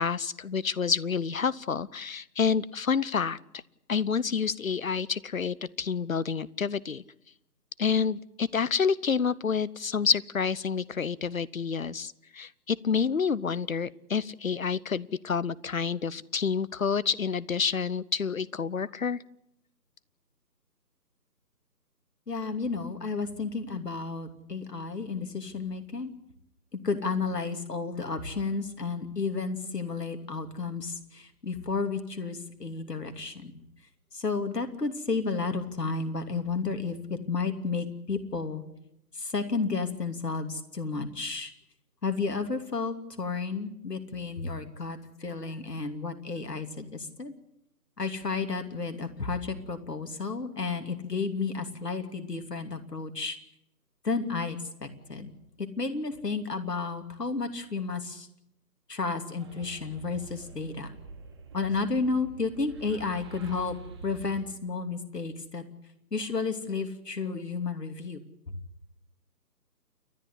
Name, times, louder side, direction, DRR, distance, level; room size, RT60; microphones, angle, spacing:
voice 1, 0.0-3.4 3.9-7.0 7.8-19.2, left 6 dB, 55° left, 21 dB, 0.8 m, -28 dB
voice 2, 22.3-26.1 26.7-33.5 34.1-38.6 39.1-41.5 42.0-47.3 48.0-53.4 54.0-55.3 55.6-58.3 58.9-60.9 61.5-63.8 64.0-65.6 66.1-68.2, left 4 dB, 70° left, 7 dB, 3.0 m, -32 dB
sound 1, 59.4-64.4, right 4 dB, 15° right, 1.6 m, -46 dB
29.5 x 12.0 x 9.9 m, 0.79 s
figure-of-eight pair, 155°, 50 cm